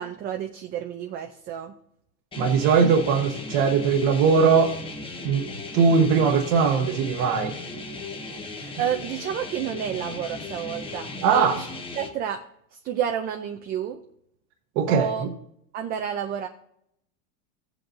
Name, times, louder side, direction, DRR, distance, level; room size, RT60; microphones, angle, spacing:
voice 1, 0.0-1.7 8.5-11.1 11.3-11.7 12.0-12.4 12.8-14.0 14.9-15.3 15.7-16.5, right 9 dB, 25° right, 5 dB, 0.5 m, -30 dB
sound 1, 2.3-12.1, left 3 dB, 15° left, 1.0 m, -37 dB
voice 2, 2.4-4.7 5.2-5.5 5.7-7.5 11.2-11.6 14.8-15.3, right 5 dB, 60° right, 2 dB, 1.1 m, -20 dB
16.5 x 7.9 x 2.5 m, 0.75 s
cardioid pair, 165°, 37 cm